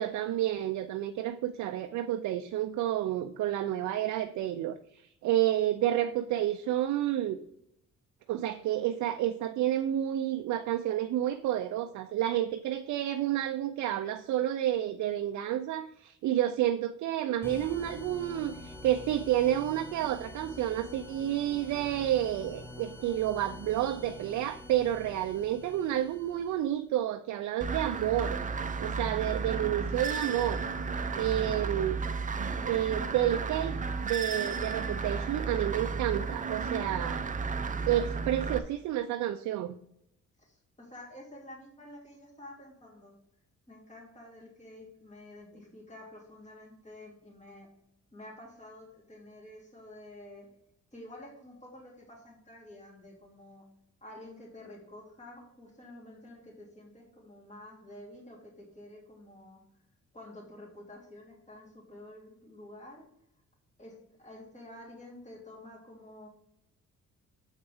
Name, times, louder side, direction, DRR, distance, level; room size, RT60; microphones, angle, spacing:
voice 1, 0.0-7.4 8.3-28.4 28.8-30.6 31.1-32.0 32.4-33.8 34.0-37.2 37.9-39.7, right 12 dB, 70° right, 8 dB, 0.5 m, -30 dB
sound 1, 17.4-26.8, left 2 dB, 10° left, 0.9 m, -46 dB
sound 2, 27.6-38.6, right 4 dB, 25° right, 0.6 m, -33 dB
voice 2, 40.4-43.1 43.7-47.7 48.1-50.5 50.9-53.6 54.0-59.6 60.1-63.0 63.8-66.3, left 1 dB, 25° left, -2 dB, 2.8 m, -49 dB
7.3 x 6.5 x 3.5 m, 0.78 s
cardioid pair, 90°, 30 cm